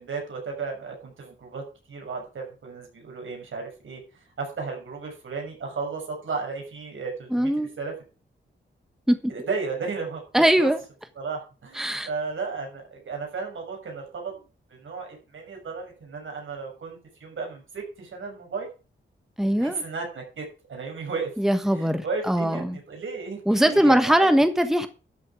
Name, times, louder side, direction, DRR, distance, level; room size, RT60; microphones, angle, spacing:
voice 1, 0.0-1.6 1.9-7.5 7.8-7.9 9.3-10.2 10.6-10.7 11.2-18.7 19.6-21.3 21.7-24.3, right 4 dB, 80° right, 6.4 m, -34 dB
voice 2, 7.3-7.7 9.1-9.3 10.3-10.8 11.7-12.1 19.4-19.8 21.4-22.8 23.5-24.9, equal, ahead, 1.4 m, -21 dB
12.5 x 7.5 x 5.0 m
cardioid pair, 75°, 20 cm